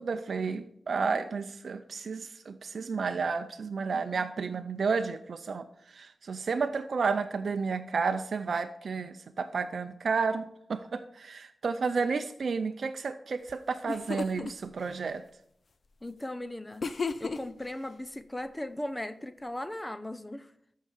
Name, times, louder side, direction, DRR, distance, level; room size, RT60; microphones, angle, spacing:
voice 1, 0.0-5.6 5.9-10.4 10.7-15.2, right 5 dB, 70° right, 8 dB, 0.5 m, -31 dB
sound 1, 13.5-13.6 13.8-14.5 16.8-17.7, left 4 dB, 60° left, 0.5 m, -33 dB
voice 2, 16.0-16.9 17.2-20.5, left 1 dB, 15° left, 13 dB, 0.6 m, -38 dB
13.5 x 5.5 x 4.9 m, 0.72 s
cardioid pair, 65°, 0 cm